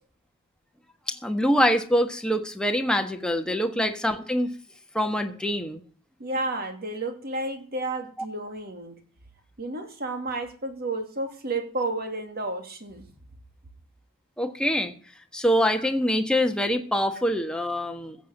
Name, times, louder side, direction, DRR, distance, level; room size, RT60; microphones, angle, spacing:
voice 1, 1.1-4.5 4.9-5.8 14.4-14.9 15.3-18.2, equal, 5° left, 5 dB, 1.4 m, -24 dB
voice 2, 6.2-9.0 9.6-13.1 15.8-15.9, right 2 dB, 45° right, 6 dB, 2.6 m, -31 dB
15.5 x 7.7 x 6.6 m, 0.43 s
head